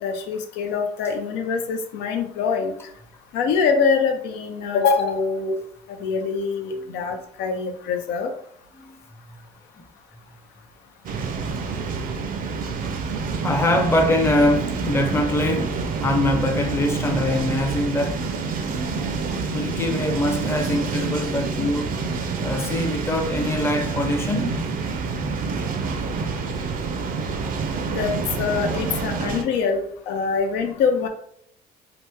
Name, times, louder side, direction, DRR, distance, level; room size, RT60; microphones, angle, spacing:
voice 1, 0.0-2.7 3.3-5.6 5.9-8.3 27.9-31.1, left 5 dB, 90° left, 0.5 m, -24 dB
sound 1, 11.0-29.4, right 4 dB, 55° right, 0.5 m, -27 dB
voice 2, 13.4-18.3 19.5-21.9 22.4-24.5 27.7-27.8, left 1 dB, 15° left, 0.5 m, -23 dB
2.9 x 2.1 x 3.3 m
cardioid pair, 110°, 17 cm